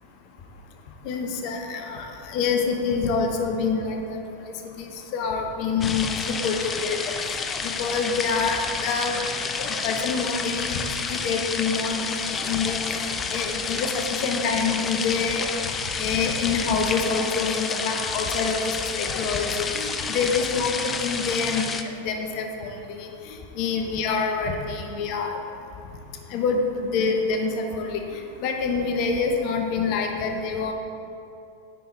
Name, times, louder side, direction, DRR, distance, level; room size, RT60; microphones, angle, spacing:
voice 1, 1.0-7.3 7.6-9.2 9.6-15.7 16.0-23.1 23.6-25.4 26.3-28.0 28.4-30.7, left 5 dB, 45° left, 3 dB, 0.9 m, -27 dB
sound 1, 5.8-21.8, left 5 dB, 20° left, 0.5 m, -30 dB
9.1 x 5.8 x 4.5 m, 2.6 s
figure-of-eight pair, 90°, 0 cm